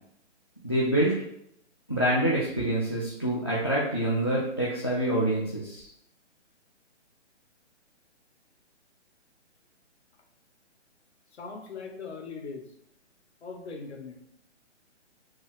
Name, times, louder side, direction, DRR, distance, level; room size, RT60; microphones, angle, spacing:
voice 1, 0.6-1.1 1.9-5.9, right 1 dB, 25° left, -6 dB, 0.4 m, -26 dB
voice 2, 11.4-12.6 13.4-14.2, left 4 dB, 65° left, 2 dB, 1.2 m, -40 dB
5.3 x 2.0 x 4.8 m, 0.72 s
hypercardioid pair, 165°, 36 cm